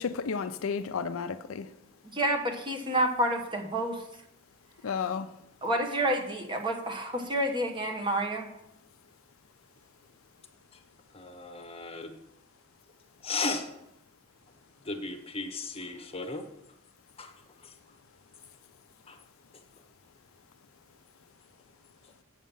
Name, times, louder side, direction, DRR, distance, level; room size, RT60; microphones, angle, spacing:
voice 1, 0.0-1.7 4.8-5.3, left 6 dB, 70° left, 0.5 m, -32 dB
voice 2, 2.0-4.0 5.6-8.5, right 1 dB, 25° right, 1.2 m, -29 dB
voice 3, 11.1-12.2 13.2-13.7 14.8-16.5 17.2-17.3 17.6-17.7 19.1-19.2, left 3 dB, 30° left, 1.0 m, -35 dB
8.1 x 7.5 x 5.4 m
head